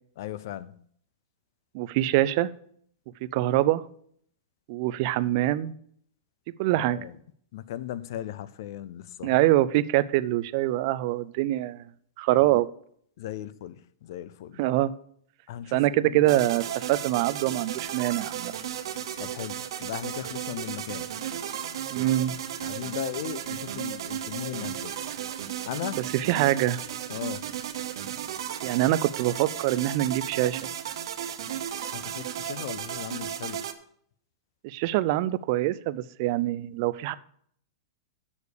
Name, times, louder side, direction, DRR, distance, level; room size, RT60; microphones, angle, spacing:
voice 1, 0.2-0.8 6.8-7.2 7.5-9.4 12.4-12.6 13.2-14.6 15.5-16.5 19.2-21.1 22.6-25.0 25.6-26.0 27.1-27.4 31.9-33.6, left 12 dB, 50° left, 0.5 m, -37 dB
voice 2, 1.7-2.5 3.2-3.8 4.7-5.7 6.6-7.0 9.2-11.8 12.2-12.7 14.6-14.9 15.7-18.5 21.9-22.3 25.9-26.8 28.6-30.6 34.6-37.1, right 15 dB, 40° right, 0.4 m, -24 dB
sound 1, 16.3-33.7, right 10 dB, 70° right, 1.0 m, -35 dB
7.0 x 6.5 x 6.7 m
supercardioid pair, 165°, 3 cm